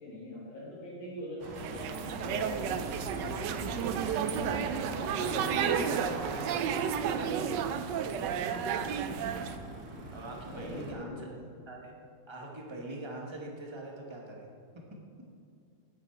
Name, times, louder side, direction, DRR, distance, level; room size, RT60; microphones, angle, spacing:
voice 1, 0.0-3.4 3.9-4.6 5.0-7.5 10.5-11.4, left 1 dB, 60° left, -6 dB, 3.3 m, -43 dB
sound 1, 1.4-10.9, right 2 dB, 55° right, 1.6 m, -42 dB
sound 2, 1.6-9.6, right 8 dB, 80° right, 1.0 m, -32 dB
voice 2, 4.9-5.4 10.1-11.3 11.7-11.9 12.3-14.5, right 2 dB, 20° right, -1 dB, 0.8 m, -43 dB
9.6 x 7.9 x 4.3 m, 2.4 s
omnidirectional pair, 2.4 m